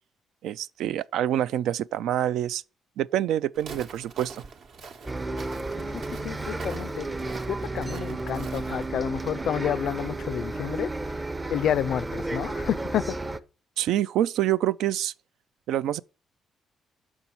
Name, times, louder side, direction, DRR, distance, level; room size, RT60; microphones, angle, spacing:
voice 1, 0.4-2.6 3.0-4.4 13.8-15.1 15.7-16.0, right 12 dB, 85° right, 0.3 m, -26 dB
Walk footsteps, 3.5-8.9, right 5 dB, 65° right, 1.1 m, -44 dB
Bus, 5.1-13.4, right 2 dB, 20° right, 0.6 m, -32 dB
voice 2, 6.2-7.1 7.5-11.2 11.5-13.2, left 9 dB, 70° left, 0.3 m, -29 dB
6.2 x 5.4 x 4.3 m
cardioid pair, 90°, 0 cm